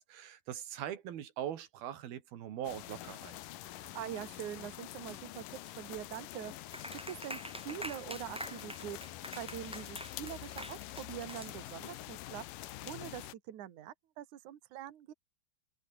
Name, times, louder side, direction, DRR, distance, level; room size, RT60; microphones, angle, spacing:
voice 1, 0.0-3.4, right 10 dB, 85° right, 3.9 m, -41 dB
sound 1, 2.6-13.3, left 15 dB, 70° left, 2.4 m, -46 dB
voice 2, 3.7-5.4 5.8-6.7 7.1-7.4 7.6-15.1, right 11 dB, 60° right, 3.0 m, -44 dB
Clapping, 6.7-12.0, equal, ahead, 4.3 m, -46 dB
omnidirectional pair, 4.2 m